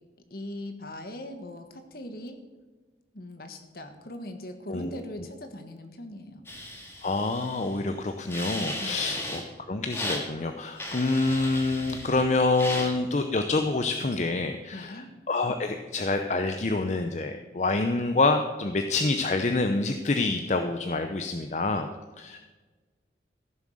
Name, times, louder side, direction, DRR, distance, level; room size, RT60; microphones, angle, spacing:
voice 1, 0.3-2.4 3.1-6.5 8.8-9.2 14.7-15.1, left 1 dB, 55° left, 7 dB, 1.4 m, -40 dB
sound 1, 6.5-7.8 8.3-9.4 9.9-10.2 10.8-12.3 12.5-12.9, left 1 dB, 15° left, 2.0 m, -36 dB
voice 2, 7.0-9.4 9.7-21.9 22.2-22.4, left 3 dB, 40° left, 7 dB, 0.6 m, -27 dB
15.0 x 7.2 x 6.4 m, 1.3 s
head